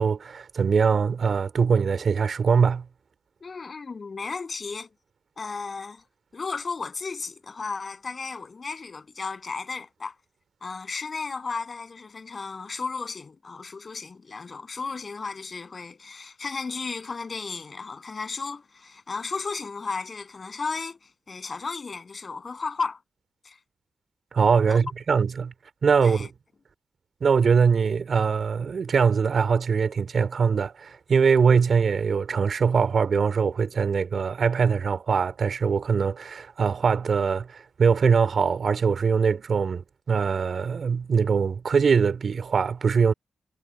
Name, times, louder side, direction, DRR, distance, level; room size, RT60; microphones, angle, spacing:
voice 1, 0.0-2.8 24.3-25.5 25.8-26.3 27.2-43.1, right 6 dB, 60° right, 3.8 m, -22 dB
voice 2, 3.4-4.9 5.4-6.0 6.3-10.1 10.6-21.0 21.3-23.0 23.4-23.6 24.7-24.9 26.0-26.3, left 4 dB, 45° left, 8.0 m, -34 dB
cardioid pair, 65°, 0 cm